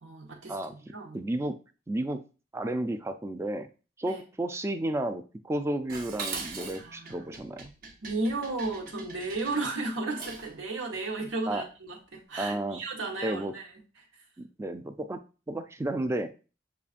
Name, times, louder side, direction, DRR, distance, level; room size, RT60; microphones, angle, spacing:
voice 1, 0.0-1.2 4.0-4.2 6.8-7.3 8.0-14.1, right 2 dB, 85° right, -1 dB, 1.2 m, -34 dB
voice 2, 1.1-1.5 1.9-2.2 2.5-3.7 4.0-7.7 11.5-11.6 12.4-12.8 13.2-13.5 14.6-15.2 15.5-16.3, right 1 dB, 15° right, 8 dB, 0.3 m, -32 dB
Dishes pots and pans, 5.9-10.6, right 4 dB, 50° right, 0.7 m, -41 dB
6.9 x 2.4 x 2.5 m, 0.34 s
head